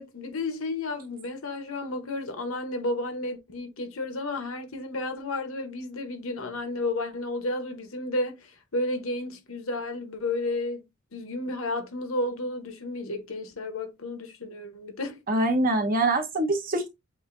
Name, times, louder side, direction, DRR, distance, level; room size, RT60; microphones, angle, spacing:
voice 1, 0.0-10.8 11.1-15.2, left 2 dB, 70° left, 0.9 m, -32 dB
voice 2, 15.3-16.9, right 2 dB, 40° right, 1.0 m, -24 dB
7.6 x 2.7 x 2.5 m
head